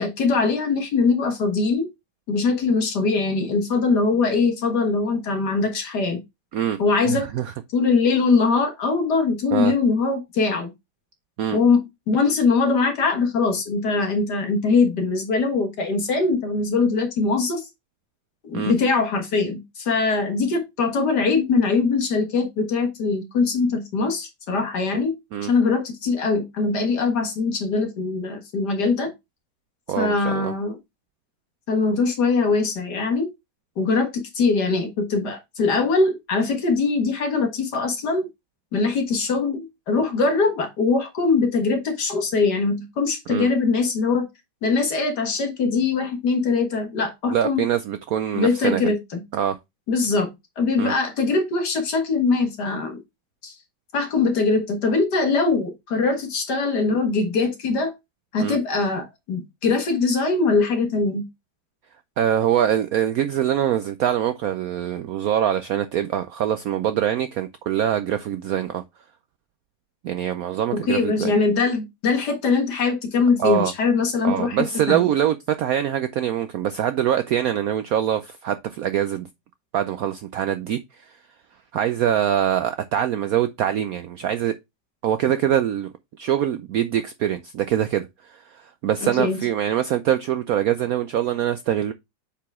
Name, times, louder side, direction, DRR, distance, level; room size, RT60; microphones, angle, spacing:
voice 1, 0.0-1.9 2.3-6.2 6.8-7.3 7.7-10.7 11.5-17.6 18.4-25.1 25.4-29.1 30.0-30.8 31.7-33.3 33.8-38.3 38.7-44.3 44.6-47.6 48.3-49.2 49.9-50.3 50.6-53.0 53.4-53.5 53.9-57.9 58.3-61.3 70.7-75.1 89.0-89.4, left 4 dB, 60° left, 2.1 m, -22 dB
voice 2, 7.0-7.5 9.5-9.7 11.4-11.6 18.5-18.7 25.3-25.5 29.9-30.5 43.3-43.5 47.3-48.9 49.3-49.6 50.8-50.9 58.4-58.6 62.2-68.8 70.0-71.3 73.4-73.7 74.2-79.3 79.7-81.1 81.7-84.6 85.0-91.9, right 10 dB, 90° right, 0.7 m, -24 dB
6.9 x 4.8 x 3.5 m
omnidirectional pair, 2.1 m